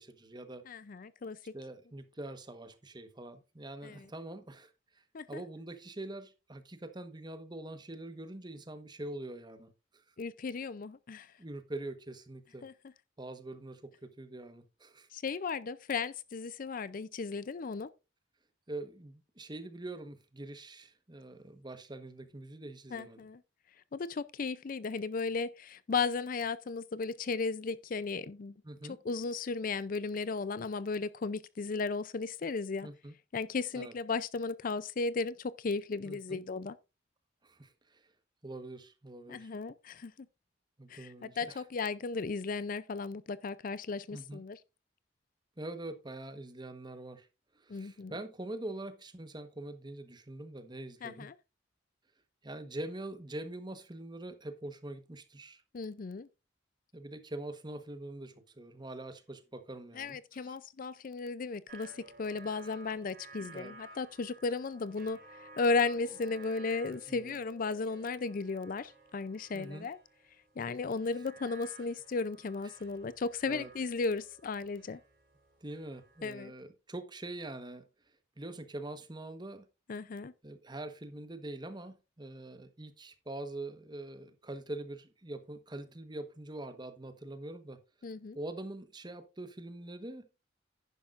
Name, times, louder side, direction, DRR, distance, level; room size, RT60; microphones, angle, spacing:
voice 1, 0.0-0.6 1.5-10.0 11.4-12.6 13.2-15.1 18.7-23.2 28.6-29.0 32.8-33.1 33.7-33.9 36.0-36.4 37.4-38.1 38.4-39.5 40.8-41.6 44.1-44.4 45.6-47.3 47.5-51.3 52.4-55.6 56.9-60.2 60.4-60.5 63.5-63.7 67.1-67.4 69.5-69.9 73.4-73.7 75.6-77.8 78.4-79.6 80.4-87.8 88.3-90.3, right 2 dB, 25° right, 1.2 m, -44 dB
voice 2, 0.7-1.5 3.8-4.1 5.1-5.4 10.2-11.3 12.6-12.7 15.1-17.9 22.9-23.4 23.9-28.5 28.8-32.9 33.3-36.8 39.3-40.1 40.9-44.6 47.7-48.1 51.0-51.3 55.7-56.3 59.9-70.0 70.6-75.0 76.2-76.5 79.9-80.3 88.0-88.4, left 4 dB, 45° left, 0.5 m, -35 dB
sound 1, 61.7-76.3, right 2 dB, 55° right, 5.4 m, -55 dB
10.5 x 10.5 x 2.5 m
head